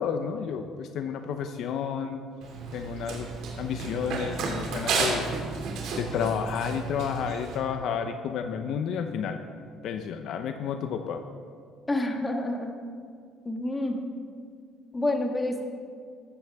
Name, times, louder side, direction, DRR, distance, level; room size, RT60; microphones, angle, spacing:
voice 1, 0.0-2.2 2.7-3.3 3.6-5.4 6.0-9.4 9.8-11.2, left 7 dB, 65° left, 7 dB, 0.7 m, -31 dB
Run, 2.4-7.6, right 4 dB, 70° right, 2.6 m, -32 dB
voice 2, 11.9-12.7 13.4-14.0 14.9-15.6, left 1 dB, 15° left, 3 dB, 1.5 m, -28 dB
14.5 x 14.0 x 3.6 m, 2.1 s
cardioid pair, 120°, 0 cm